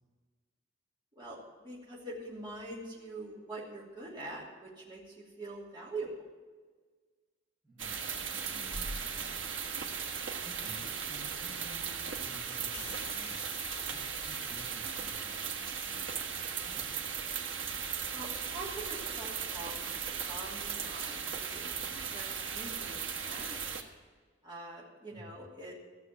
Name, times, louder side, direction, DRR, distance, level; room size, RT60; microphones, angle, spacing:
voice 1, 1.1-6.1 18.1-23.9 24.4-25.7, right 2 dB, 25° right, -5 dB, 2.8 m, -45 dB
voice 2, 7.6-9.6 10.5-13.4 13.8-17.0 25.1-25.3, equal, ahead, -11 dB, 5.3 m, -53 dB
sound 1, 7.8-23.8, right 6 dB, 80° right, 1.4 m, -37 dB
sound 2, 12.7-16.1, left 3 dB, 35° left, 5.1 m, -50 dB
15.0 x 6.9 x 9.1 m, 1.5 s
head